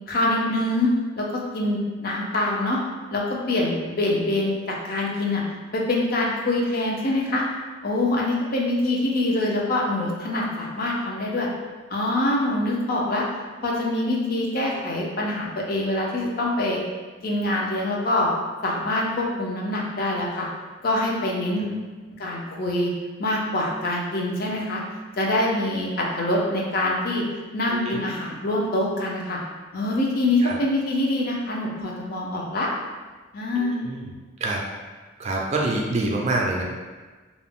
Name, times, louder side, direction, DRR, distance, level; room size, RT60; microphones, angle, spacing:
voice 1, 0.1-1.3 1.5-2.8 3.1-5.4 5.7-7.4 7.8-11.5 11.9-13.2 13.6-16.8 17.2-18.3 18.6-20.5 20.8-21.7 22.2-22.9 23.2-24.8 25.2-27.2 27.5-29.4 29.7-32.7 33.3-33.8, left 1 dB, 50° left, -2 dB, 0.5 m, -24 dB
voice 2, 27.7-28.0 30.4-30.5 33.6-34.1 34.4-34.6 35.2-36.6, right 2 dB, 35° right, -1 dB, 0.3 m, -26 dB
2.4 x 2.0 x 3.5 m, 1.4 s
head